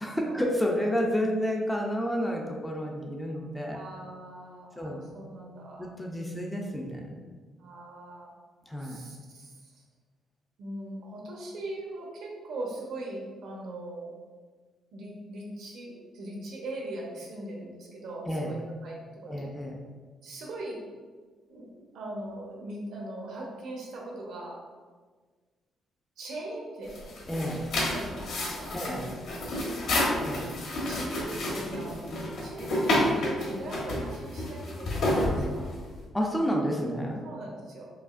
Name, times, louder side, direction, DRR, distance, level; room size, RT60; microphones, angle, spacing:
voice 1, 0.0-3.8 4.8-5.0 5.8-7.2 8.7-9.0 18.3-18.5 19.3-19.8 27.3-27.6 28.7-29.1 30.2-30.5 36.1-37.2, equal, 5° left, 0 dB, 0.4 m, -30 dB
voice 2, 3.7-5.9 7.6-8.3 8.8-9.7 10.6-14.1 14.9-19.5 20.2-20.8 21.5-21.7 21.9-24.6 26.2-27.1 27.9-29.9 30.8-32.0 32.4-35.7 37.2-37.9, right 1 dB, 70° right, -2 dB, 0.9 m, -40 dB
sound 1, 26.8-36.0, left 1 dB, 60° left, 1.0 m, -30 dB
4.7 x 2.8 x 2.5 m, 1.5 s
cardioid pair, 155°, 0 cm